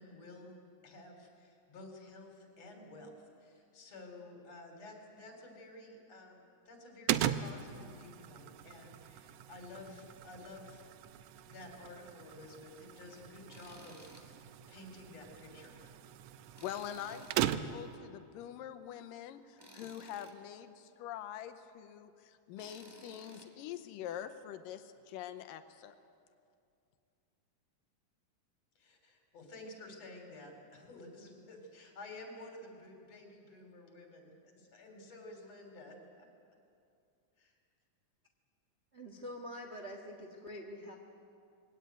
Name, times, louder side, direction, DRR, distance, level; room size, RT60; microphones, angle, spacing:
voice 1, 0.0-10.9 11.5-15.7 28.8-36.3 37.4-37.6, left 2 dB, 50° left, 3 dB, 4.3 m, -52 dB
sound 1, 7.1-18.0, right 11 dB, 80° right, 1.8 m, -39 dB
Tools, 13.5-14.3 14.7-14.8 16.6-17.6 19.6-20.4 22.6-23.5, right 1 dB, 15° right, 1.0 m, -55 dB
voice 2, 16.6-26.0, left 10 dB, 85° left, 9 dB, 2.5 m, -45 dB
voice 3, 38.9-41.0, equal, 60° right, 2 dB, 0.6 m, -45 dB
21.5 x 17.0 x 9.4 m, 2.5 s
omnidirectional pair, 3.9 m